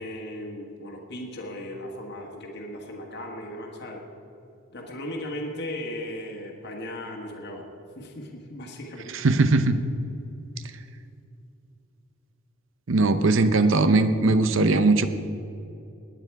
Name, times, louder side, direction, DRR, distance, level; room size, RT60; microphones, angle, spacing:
voice 1, 0.0-4.0 4.7-7.7 7.9-9.1, left 1 dB, 50° left, 0 dB, 1.5 m, -37 dB
voice 2, 9.1-9.8 12.9-15.1, right 3 dB, 65° right, 10 dB, 0.7 m, -20 dB
19.5 x 9.2 x 4.7 m, 2.7 s
head